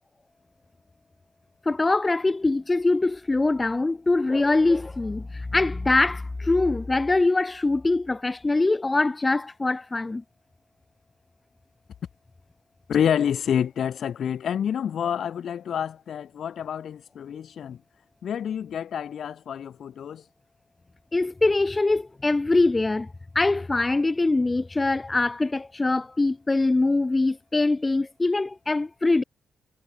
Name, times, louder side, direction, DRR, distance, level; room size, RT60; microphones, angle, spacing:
voice 1, 1.6-10.2 21.1-29.2, left 2 dB, 15° left, 1.1 m, -23 dB
voice 2, 12.9-17.8 18.2-20.2, left 8 dB, 55° left, 3.9 m, -28 dB
wide cardioid pair, 150°, 0 cm